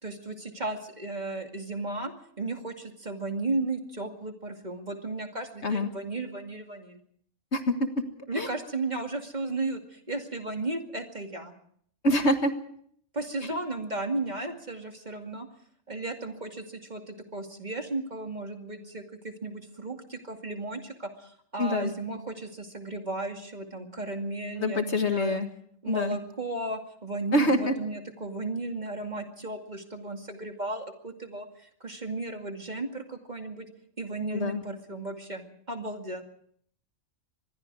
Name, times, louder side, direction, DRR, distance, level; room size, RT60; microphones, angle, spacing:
voice 1, 0.0-7.0 8.3-11.5 13.1-15.5 15.9-25.4 25.8-33.7 34.0-36.2, right 2 dB, 35° right, 4 dB, 2.5 m, -35 dB
voice 2, 7.5-7.9 8.4-8.5 12.0-12.5 13.5-13.6 21.6-21.9 24.6-25.5 25.9-26.2 27.3-27.7 34.3-34.6, left 1 dB, 55° left, 7 dB, 1.9 m, -25 dB
25.0 x 21.5 x 4.8 m, 0.63 s
omnidirectional pair, 1.4 m